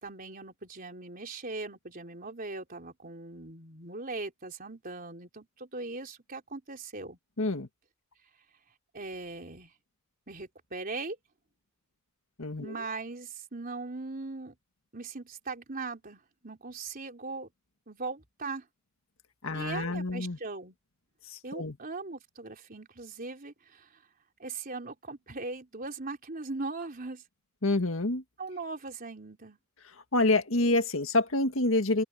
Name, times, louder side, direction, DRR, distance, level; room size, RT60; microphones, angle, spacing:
voice 1, 0.0-7.2 8.9-9.7 10.3-11.2 12.6-14.5 14.9-17.5 17.9-18.7 19.5-20.8 21.4-24.0 24.4-27.2 28.4-29.6, right 3 dB, 45° right, 3.7 m, -39 dB
voice 2, 7.4-7.7 12.4-12.7 19.4-20.4 21.3-21.7 27.6-28.2 30.1-32.0, left 2 dB, 75° left, 1.9 m, -27 dB
open air
head